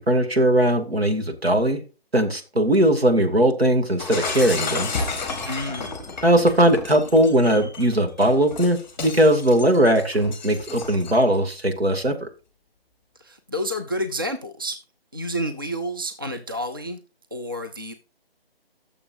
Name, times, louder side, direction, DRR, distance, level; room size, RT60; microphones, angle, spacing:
voice 1, 0.0-1.8 2.1-4.9 6.2-12.3, right 1 dB, 75° right, 4 dB, 2.4 m, -19 dB
Shatter, 4.0-11.4, left 4 dB, 10° left, 1.3 m, -32 dB
voice 2, 5.4-5.9 13.2-14.8 15.1-17.0 17.3-17.9, equal, 20° right, 5 dB, 0.4 m, -29 dB
16.0 x 6.9 x 2.6 m, 0.33 s
figure-of-eight pair, 155°, 31 cm